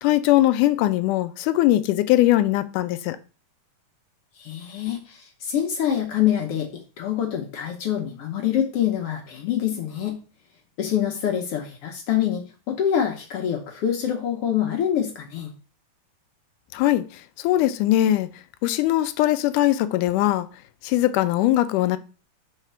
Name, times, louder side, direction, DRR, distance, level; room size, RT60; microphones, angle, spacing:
voice 1, 0.0-3.2 16.7-17.0 17.4-18.3 18.6-20.5 20.8-22.0, left 14 dB, 85° left, 2.1 m, -20 dB
voice 2, 4.4-6.7 7.0-10.2 10.8-15.5, left 10 dB, 65° left, 1.5 m, -25 dB
5.8 x 4.1 x 5.5 m
omnidirectional pair, 3.6 m